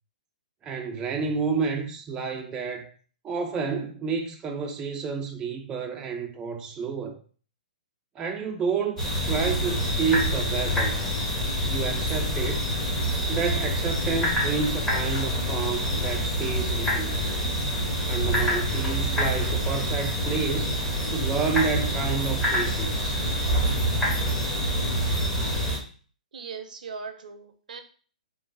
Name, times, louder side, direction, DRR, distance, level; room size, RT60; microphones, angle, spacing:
voice 1, 0.6-2.9 3.2-7.2 8.2-11.0 11.6-12.7 13.3-17.2 18.0-20.8 21.1-23.2, right 5 dB, 15° right, 0.3 m, -30 dB
sound 1, 9.0-25.8, equal, 10° left, 0.9 m, -26 dB
voice 2, 26.3-27.8, right 5 dB, 75° right, 0.5 m, -39 dB
3.0 x 2.3 x 2.5 m
hypercardioid pair, 135°, 4 cm